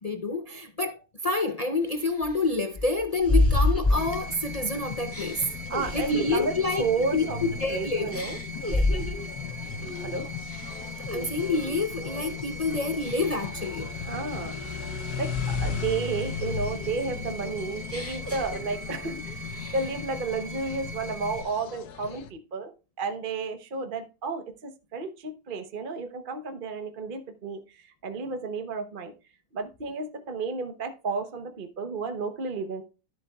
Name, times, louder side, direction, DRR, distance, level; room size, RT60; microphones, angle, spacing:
voice 1, 0.0-5.4 5.9-6.8 7.1-8.1 8.7-8.9 10.7-13.9, left 3 dB, 55° left, 0.4 m, -28 dB
sound 1, 1.2-1.3 1.9-4.6 5.1-7.7 8.1-9.3 9.8-10.1 10.4-11.7 12.2-12.5 13.0-13.6 14.1-16.0 16.4-19.1 19.4-20.1, left 2 dB, 10° left, 1.8 m, -30 dB
sound 2, 3.9-22.3, left 7 dB, 70° left, 1.3 m, -38 dB
sound 3, 4.0-21.4, left 2 dB, 10° right, 3.0 m, -39 dB
voice 2, 5.7-7.4 7.7-8.4 10.0-10.3 14.1-14.5 15.2-22.7 23.0-27.6 28.0-29.1 29.5-32.8, right 4 dB, 40° right, 0.9 m, -32 dB
13.0 x 7.9 x 2.3 m
omnidirectional pair, 1.7 m